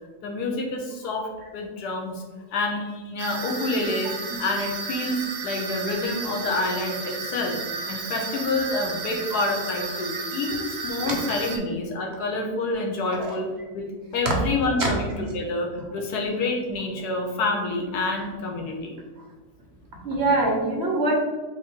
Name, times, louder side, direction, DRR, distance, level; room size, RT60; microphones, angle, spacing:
voice 1, 0.2-2.2 2.5-7.6 7.9-13.5 13.7-13.9 14.1-19.0, left 2 dB, 90° left, 2 dB, 1.4 m, -28 dB
sound 1, 3.2-11.6, right 4 dB, 75° right, 1.2 m, -33 dB
voice 2, 20.0-21.2, right 2 dB, 50° right, -1 dB, 1.0 m, -23 dB
3.7 x 3.0 x 4.3 m, 1.4 s
omnidirectional pair, 1.6 m